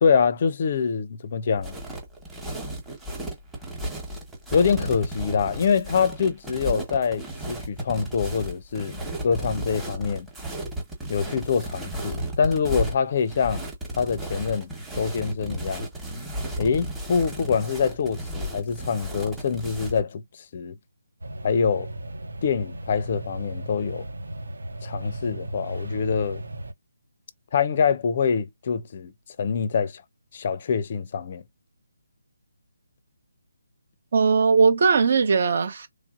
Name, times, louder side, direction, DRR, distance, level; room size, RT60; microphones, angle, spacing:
voice 1, 0.0-1.7 4.5-9.0 9.2-10.3 11.1-13.6 14.0-14.7 15.0-15.9 16.6-20.2 20.5-20.8 21.4-21.9 22.4-24.1 24.8-26.4 27.5-29.1 29.4-30.0 30.3-31.4, left 6 dB, 40° left, 0.4 m, -25 dB
sound 1, 1.6-20.0, right 1 dB, 5° right, 1.1 m, -34 dB
sound 2, 21.2-26.7, right 1 dB, 80° right, 0.7 m, -36 dB
voice 2, 34.1-35.9, right 5 dB, 50° right, 0.9 m, -19 dB
3.1 x 2.6 x 2.4 m
figure-of-eight pair, 155°, 0 cm